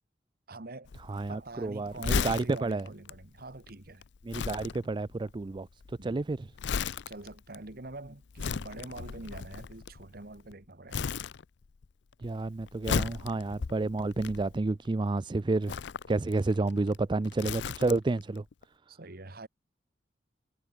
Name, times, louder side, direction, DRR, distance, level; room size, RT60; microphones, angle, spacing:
voice 1, 0.5-0.9 1.3-4.0 6.0-6.2 7.1-11.1 18.9-19.5, right 2 dB, 55° right, 1.7 m, -45 dB
Crumpling crinkling, 0.8-10.5 10.9-11.9 12.1-14.9 15.6-18.2 18.5-18.6, left 5 dB, 65° left, 0.5 m, -36 dB
voice 2, 1.0-2.9 4.2-6.5 12.2-15.8 16.1-18.4, right 3 dB, 25° right, 0.4 m, -30 dB
head